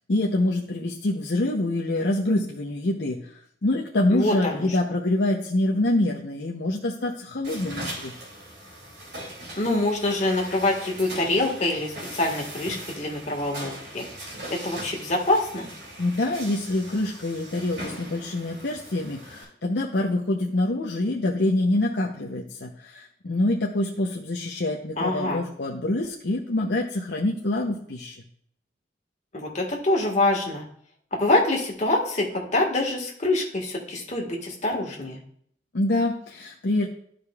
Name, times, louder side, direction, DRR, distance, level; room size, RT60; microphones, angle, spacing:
voice 1, 0.1-8.1 16.0-28.2 35.7-36.9, left 1 dB, 70° left, -1 dB, 0.7 m, -26 dB
voice 2, 4.1-4.7 9.6-14.0 14.5-15.7 25.0-25.4 29.3-30.6 31.1-35.2, left 2 dB, 40° left, 0 dB, 1.6 m, -25 dB
sound 1, 7.4-19.4, right 1 dB, 65° right, 2.5 m, -40 dB
12.5 x 5.1 x 2.3 m, 0.64 s
head